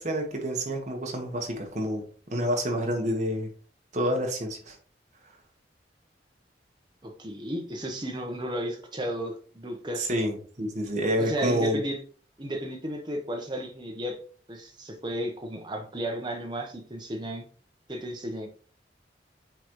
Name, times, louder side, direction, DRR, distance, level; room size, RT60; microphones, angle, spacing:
voice 1, 0.0-2.0 2.3-3.5 3.9-4.8 10.0-11.8, equal, 40° right, 1 dB, 1.6 m, -28 dB
voice 2, 7.0-10.0 11.2-12.0 12.4-14.2 14.5-17.5 17.9-18.5, equal, 25° right, 2 dB, 1.2 m, -33 dB
8.4 x 4.1 x 3.2 m, 0.42 s
head